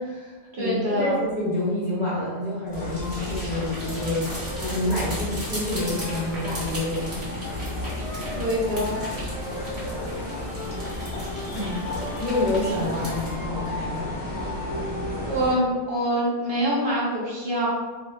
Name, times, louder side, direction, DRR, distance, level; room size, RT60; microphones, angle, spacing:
voice 1, 0.0-7.2 12.2-14.2, left 2 dB, 45° left, -9 dB, 1.1 m, -28 dB
voice 2, 0.5-1.2 8.3-9.0 11.5-11.8 12.6-12.7 13.0-13.1 15.2-17.7, equal, 60° right, -6 dB, 0.8 m, -25 dB
sound 1, 2.7-15.5, left 1 dB, 70° left, 1.1 m, -32 dB
sound 2, 2.7-13.3, right 1 dB, 80° right, 1.5 m, -39 dB
2.8 x 2.6 x 2.3 m, 1.3 s
omnidirectional pair, 1.1 m